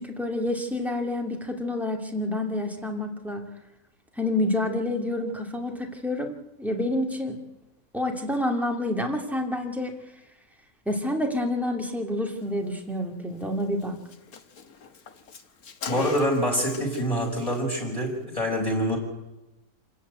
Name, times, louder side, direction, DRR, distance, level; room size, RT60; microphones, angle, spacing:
voice 1, 0.0-3.5 4.2-7.4 7.9-9.9 10.9-14.0, left 1 dB, ahead, 2 dB, 2.3 m, -28 dB
Car, 13.4-13.5 13.8-13.9 14.1-17.1 17.3-17.6, left 6 dB, 70° left, 1.8 m, -38 dB
voice 2, 15.9-19.0, equal, 20° left, 1 dB, 5.5 m, -26 dB
27.0 x 14.5 x 9.4 m, 1.0 s
omnidirectional pair, 1.7 m